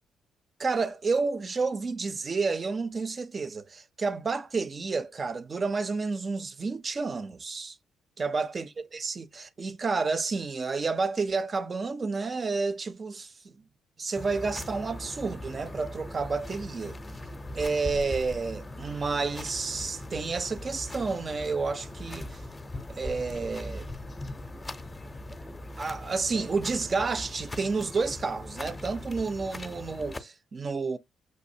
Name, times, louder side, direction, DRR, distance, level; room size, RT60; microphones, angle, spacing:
voice 1, 0.6-7.8 8.2-13.5 14.0-17.0 17.5-22.4 22.9-23.9 25.8-31.0, right 4 dB, 40° right, 0.5 m, -30 dB
sound 1, 14.2-30.2, left 1 dB, 25° left, 0.6 m, -40 dB
6.3 x 2.6 x 2.6 m
hypercardioid pair, 45°, 0 cm